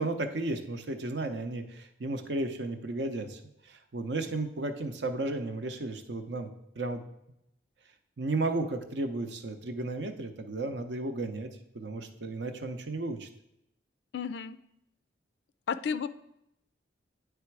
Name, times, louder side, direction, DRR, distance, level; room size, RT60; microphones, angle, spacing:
voice 1, 0.0-7.0 8.2-13.3, right 2 dB, 70° right, 7 dB, 0.7 m, -34 dB
voice 2, 14.1-14.6 15.7-16.1, left 6 dB, 65° left, 14 dB, 0.3 m, -32 dB
9.2 x 3.4 x 4.6 m, 0.81 s
head